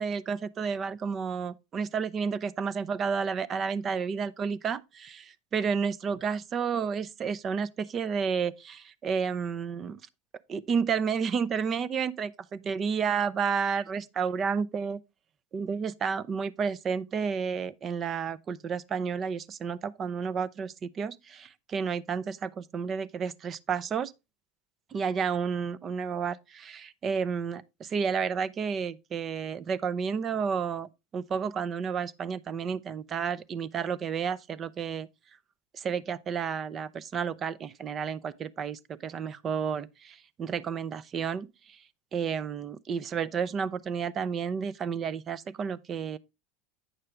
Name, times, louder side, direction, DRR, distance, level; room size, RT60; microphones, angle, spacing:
voice 1, 0.0-10.0 10.5-15.0 15.5-24.1 24.9-35.1 35.7-41.8 42.1-46.2, right 6 dB, 35° right, 0.6 m, -31 dB
8.8 x 6.5 x 3.4 m
hypercardioid pair, 90°, 0 cm